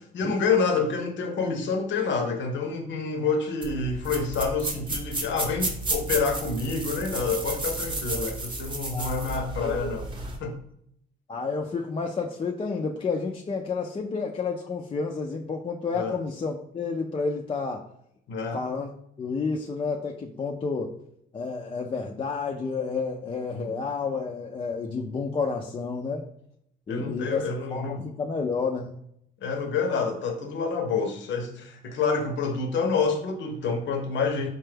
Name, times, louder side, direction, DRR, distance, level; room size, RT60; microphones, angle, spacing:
voice 1, 0.1-10.1 10.4-10.6 15.9-16.2 18.3-18.6 23.5-23.8 26.9-28.0 29.4-34.5, left 4 dB, 70° left, 4 dB, 0.7 m, -28 dB
sound 1, 3.6-10.4, right 2 dB, 25° right, 0.7 m, -32 dB
voice 2, 8.9-9.9 11.3-17.8 18.5-18.9 19.2-20.9 21.3-26.2 26.9-29.0, left 4 dB, 25° left, 0 dB, 0.4 m, -30 dB
4.2 x 2.2 x 3.3 m, 0.73 s
cardioid pair, 90°, 20 cm